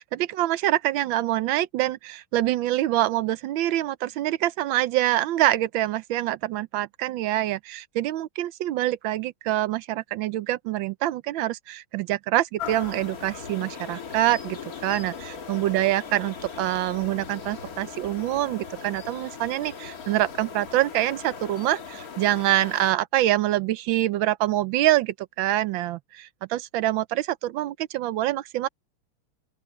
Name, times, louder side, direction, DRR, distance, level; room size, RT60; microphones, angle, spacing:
voice 1, 0.0-28.7, right 15 dB, 75° right, 1.3 m, -25 dB
sound 1, 12.6-22.9, left 6 dB, 45° left, 1.9 m, -39 dB
open air
omnidirectional pair, 2.3 m